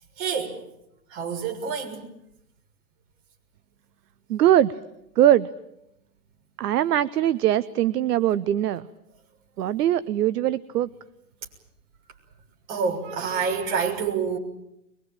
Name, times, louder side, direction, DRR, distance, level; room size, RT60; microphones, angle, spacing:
voice 1, 0.2-0.5 1.1-2.0 12.7-14.4, right 6 dB, 50° right, 6.7 m, -27 dB
voice 2, 4.3-4.7 5.2-5.5 6.6-8.9 9.6-10.9, right 12 dB, 70° right, 0.9 m, -21 dB
23.0 x 22.0 x 9.0 m
hypercardioid pair, 115°, 49 cm